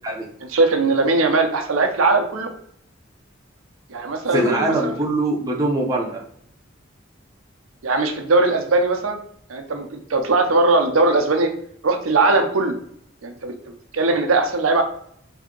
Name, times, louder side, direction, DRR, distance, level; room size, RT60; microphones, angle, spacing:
voice 1, 0.5-2.5 3.9-4.9 7.8-9.2 9.5-11.5 11.8-12.8 13.2-13.5 13.9-14.8, right 3 dB, 85° right, 4 dB, 0.6 m, -19 dB
voice 2, 4.3-6.2, right 2 dB, 15° right, -2 dB, 0.6 m, -22 dB
3.5 x 2.8 x 3.7 m, 0.64 s
head